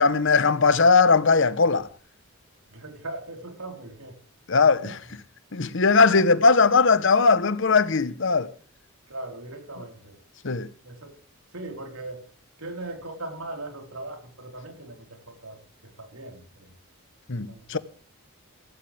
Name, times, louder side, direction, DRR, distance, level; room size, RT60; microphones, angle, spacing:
voice 1, 0.0-1.9 4.5-5.0 5.5-8.5 10.4-10.7 17.3-17.8, left 4 dB, 55° left, 1.0 m, -19 dB
voice 2, 2.7-4.2 4.8-5.0 6.1-6.2 9.1-10.2 10.8-11.2 11.5-12.2 12.6-16.7 17.5-17.8, right 2 dB, 80° right, 4.3 m, -39 dB
16.0 x 15.5 x 3.4 m
head